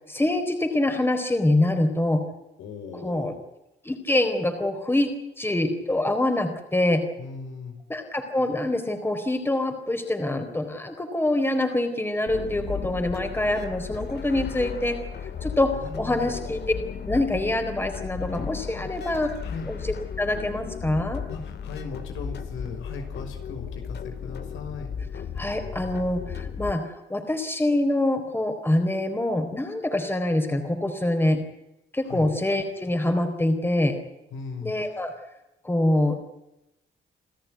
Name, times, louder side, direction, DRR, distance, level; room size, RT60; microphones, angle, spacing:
voice 1, 0.1-2.2 3.0-3.3 3.8-7.0 7.9-15.0 15.4-16.6 17.1-19.3 19.7-21.2 25.4-31.4 31.9-34.0 34.6-35.1 35.6-36.3, left 1 dB, 10° left, 6 dB, 4.0 m, -25 dB
voice 2, 2.6-3.3 7.2-7.8 15.7-16.3 19.4-19.7 21.3-24.9 32.1-32.3 34.3-34.7, left 4 dB, 85° left, 5 dB, 6.0 m, -38 dB
sound 1, 12.3-26.7, left 7 dB, 55° left, 2.2 m, -35 dB
28.5 x 14.0 x 9.5 m, 0.92 s
cardioid pair, 90°, 20 cm